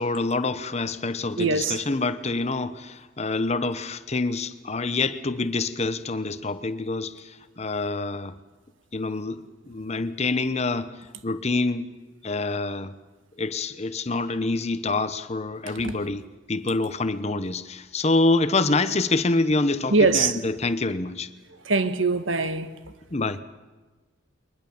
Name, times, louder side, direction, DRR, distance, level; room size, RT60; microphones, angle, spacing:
voice 1, 0.0-8.3 8.9-9.4 9.7-10.9 11.2-11.9 12.2-12.9 13.4-16.2 16.5-21.3 23.1-23.4, left 3 dB, 35° left, 0.9 m, -26 dB
voice 2, 1.4-1.8 15.8-16.0 19.9-20.4 21.7-22.7, right 3 dB, 90° right, 1.5 m, -22 dB
22.0 x 20.0 x 7.2 m
head